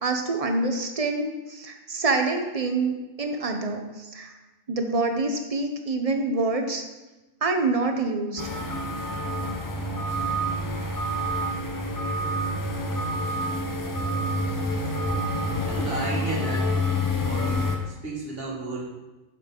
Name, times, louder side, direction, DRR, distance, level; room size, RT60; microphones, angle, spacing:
voice 1, 0.0-4.3 4.7-6.8 7.4-8.4, right 3 dB, 40° right, 5 dB, 0.6 m, -26 dB
sound 1, 8.4-17.8, equal, 25° left, 0.5 m, -28 dB
voice 2, 15.6-16.7 17.2-18.8, right 2 dB, 60° right, -4 dB, 1.9 m, -33 dB
7.6 x 5.9 x 3.7 m, 1.1 s
omnidirectional pair, 1.2 m